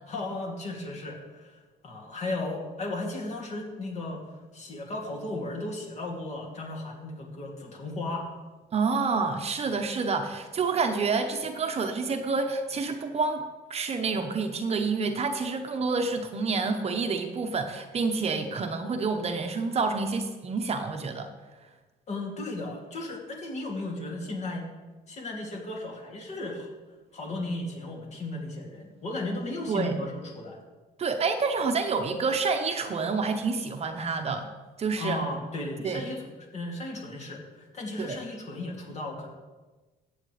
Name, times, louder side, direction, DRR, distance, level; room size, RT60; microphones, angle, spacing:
voice 1, 0.1-1.5 1.8-4.2 4.5-8.3 22.1-24.7 25.1-26.7 27.1-30.6 35.0-39.3, left 2 dB, 40° left, -1 dB, 2.5 m, -35 dB
voice 2, 8.7-13.4 13.7-21.3 29.7-29.9 31.0-34.5 34.8-35.2 35.8-36.0 38.0-38.2, right 4 dB, 40° right, 6 dB, 0.9 m, -28 dB
14.5 x 8.1 x 3.3 m, 1.2 s
cardioid pair, 110°, 17 cm